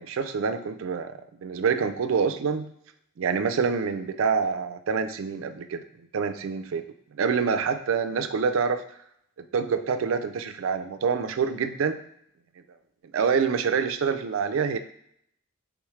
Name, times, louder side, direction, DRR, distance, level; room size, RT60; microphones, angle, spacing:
voice 1, 0.0-2.7 3.2-5.8 6.1-6.8 7.1-8.8 9.4-12.0 13.1-14.8, right 6 dB, 80° right, 9 dB, 0.4 m, -26 dB
3.5 x 3.1 x 4.8 m, 0.70 s
head